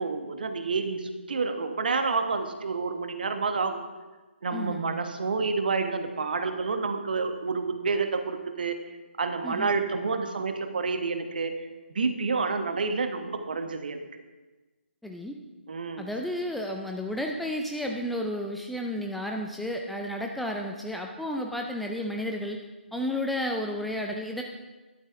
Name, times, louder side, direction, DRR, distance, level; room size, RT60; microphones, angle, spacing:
voice 1, 0.0-3.8 4.4-8.8 9.2-11.5 11.9-14.0 15.7-16.0, right 4 dB, 50° right, 7 dB, 1.3 m, -29 dB
voice 2, 4.5-4.8 9.4-9.7 15.0-15.3 16.0-22.6 22.9-24.4, left 1 dB, ahead, 1 dB, 0.4 m, -32 dB
13.0 x 12.0 x 3.5 m, 1.2 s
figure-of-eight pair, 145°, 6 cm